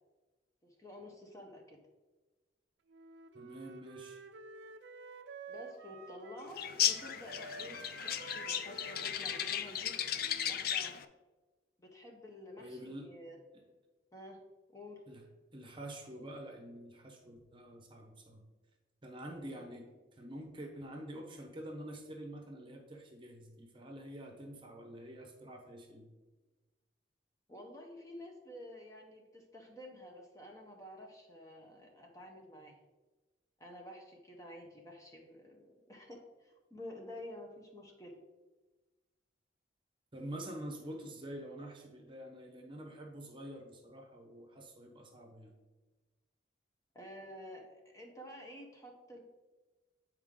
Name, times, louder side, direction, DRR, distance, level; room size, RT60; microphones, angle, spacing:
voice 1, 0.6-1.8 5.5-9.9 10.5-11.0 11.8-13.4 14.1-14.4 14.7-15.0 27.5-32.8 33.6-38.1 46.9-49.2, left 1 dB, 15° left, 0 dB, 0.9 m, -50 dB
Wind instrument woodwind instrument, 2.9-6.5 6.8-10.7, right 4 dB, 70° right, 0.5 m, -51 dB
voice 2, 3.3-4.2 12.6-13.1 15.1-15.2 15.5-18.4 19.0-26.1 40.1-45.5, right 1 dB, 25° right, 2 dB, 0.9 m, -47 dB
sound 1, 6.6-11.0, left 9 dB, 55° left, 0.4 m, -35 dB
7.8 x 4.6 x 3.7 m, 1.2 s
head